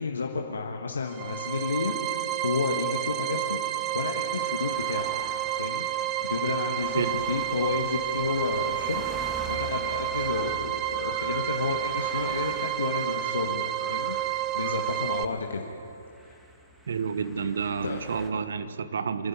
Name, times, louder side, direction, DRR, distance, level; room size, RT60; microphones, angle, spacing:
voice 1, 0.0-1.9 2.4-3.6 3.9-5.1 5.6-5.9 6.2-9.0 9.5-14.1 14.5-15.7 17.8-18.0, left 4 dB, 75° left, 2 dB, 1.7 m, -31 dB
sound 1, 1.1-15.2, right 13 dB, 25° right, 0.9 m, -30 dB
sound 2, 2.5-18.3, equal, 5° right, 2.0 m, -47 dB
sound 3, 8.2-15.1, left 4 dB, 15° left, 3.6 m, -48 dB
voice 2, 16.9-19.3, right 6 dB, 65° right, 12 dB, 1.2 m, -30 dB
27.0 x 11.0 x 9.8 m, 2.7 s
figure-of-eight pair, 125°, 0 cm